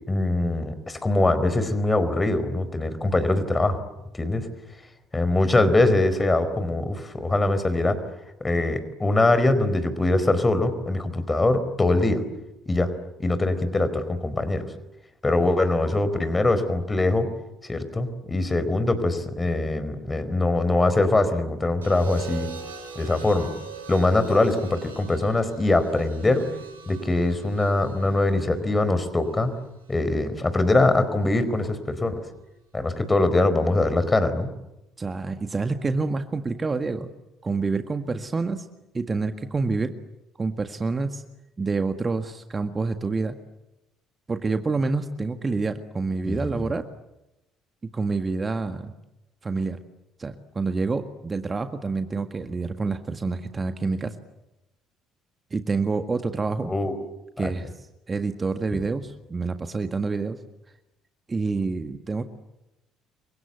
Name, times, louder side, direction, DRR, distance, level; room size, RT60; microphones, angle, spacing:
voice 1, 0.1-3.8 4.1-4.5 5.1-8.0 8.4-12.2 12.7-12.9 13.2-14.6 15.2-17.3 17.7-22.5 22.9-23.5 23.9-26.5 26.9-29.5 29.9-32.2 32.7-34.5 46.2-46.7 56.7-57.0 57.4-57.5 58.7-58.8, left 2 dB, 20° left, 12 dB, 4.5 m, -22 dB
sound 1, 21.8-30.0 31.2-31.6, right 6 dB, 85° right, 6.7 m, -43 dB
voice 2, 35.0-37.1 37.4-38.7 38.9-39.9 40.4-41.2 41.6-43.4 44.3-46.8 47.9-48.9 49.4-49.8 50.2-54.1 55.5-56.7 57.4-57.7 58.1-60.4 61.3-62.2, right 4 dB, 25° right, 8 dB, 1.7 m, -27 dB
29.5 x 24.5 x 8.3 m, 0.94 s
figure-of-eight pair, 50°, 0 cm